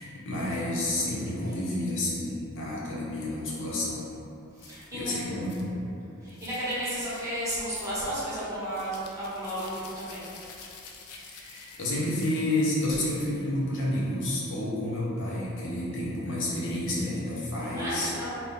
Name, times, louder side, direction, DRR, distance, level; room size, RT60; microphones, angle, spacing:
voice 1, 0.0-4.1 4.7-5.9 11.3-18.1, left 1 dB, 60° left, -6 dB, 0.8 m, -30 dB
voice 2, 4.5-5.1 6.2-10.3 17.7-18.3, right 1 dB, 15° right, -11 dB, 1.0 m, -33 dB
sound 1, 4.6-4.9 5.5-5.7 6.3-6.8 7.6-8.0 8.7-12.9, left 4 dB, 85° left, 0.5 m, -49 dB
3.6 x 2.2 x 4.1 m, 2.9 s
head